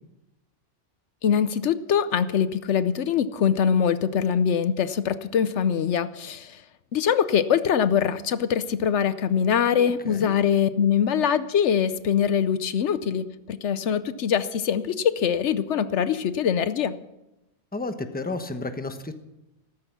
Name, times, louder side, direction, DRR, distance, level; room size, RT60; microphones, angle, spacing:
voice 1, 1.2-6.5 6.9-17.0, left 8 dB, 75° left, 13 dB, 1.0 m, -23 dB
voice 2, 9.8-10.3 17.7-19.1, left 2 dB, 10° left, 8 dB, 0.9 m, -32 dB
15.0 x 13.5 x 6.0 m, 0.93 s
omnidirectional pair, 1.2 m